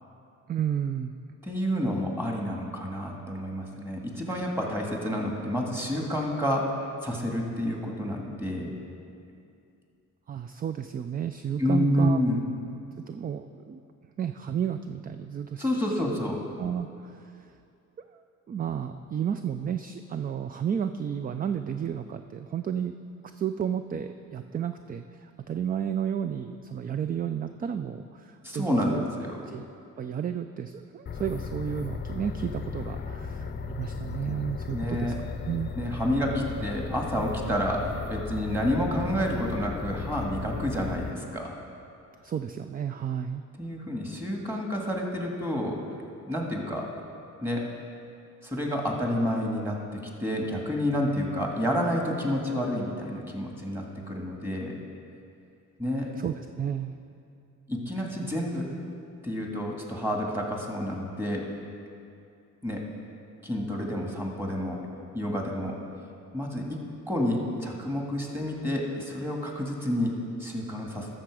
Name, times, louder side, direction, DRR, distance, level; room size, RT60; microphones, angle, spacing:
voice 1, 0.5-1.1 10.3-12.2 13.1-13.8 14.2-16.0 16.6-17.2 18.0-18.2 18.5-22.9 23.3-29.0 29.5-29.6 30.0-35.1 35.5-35.7 42.2-43.4 56.2-57.0, right 8 dB, 30° right, 9 dB, 0.3 m, -32 dB
voice 2, 1.4-8.7 11.6-12.4 15.6-16.4 28.4-29.4 34.7-35.2 35.8-41.6 43.6-45.8 46.3-46.9 47.4-47.7 48.4-54.8 55.8-56.1 57.7-58.7 59.2-61.5 62.6-62.8 63.4-64.8 65.1-65.8 66.3-66.8 67.1-70.1 70.4-71.1, equal, 10° right, 0 dB, 2.0 m, -29 dB
sound 1, 31.1-41.1, left 5 dB, 35° left, 0.6 m, -35 dB
13.0 x 6.6 x 4.9 m, 2.6 s
cardioid pair, 90°, 30 cm